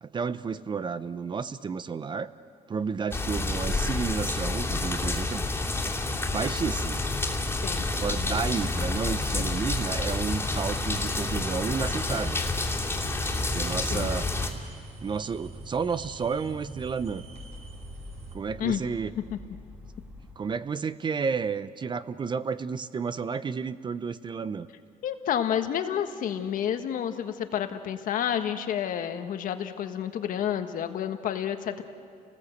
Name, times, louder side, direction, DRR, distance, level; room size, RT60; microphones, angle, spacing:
voice 1, 0.0-2.3 2.7-5.4 6.3-7.0 7.9-12.4 13.5-14.3 15.0-17.2 18.3-19.1 20.4-24.7, right 5 dB, 30° right, 14 dB, 0.7 m, -31 dB
sound 1, 3.1-14.5, left 2 dB, 15° left, 2.9 m, -29 dB
sound 2, 5.7-20.3, left 2 dB, 10° right, 2.5 m, -45 dB
sound 3, 10.5-18.4, right 4 dB, 50° right, 4.5 m, -46 dB
voice 2, 25.0-31.8, left 9 dB, 65° left, 7 dB, 1.5 m, -29 dB
29.5 x 19.5 x 8.0 m, 2.4 s
cardioid pair, 120°, 15 cm